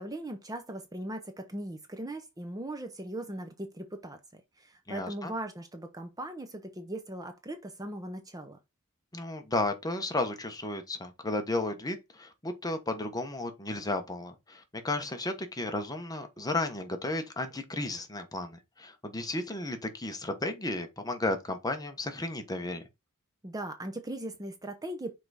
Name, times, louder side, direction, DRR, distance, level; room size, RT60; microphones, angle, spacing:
voice 1, 0.0-4.2 4.6-8.6 23.4-25.1, right 1 dB, 15° right, 0.7 m, -39 dB
voice 2, 4.9-5.3 9.1-22.8, left 2 dB, 15° left, 1.0 m, -33 dB
5.8 x 4.7 x 4.1 m
head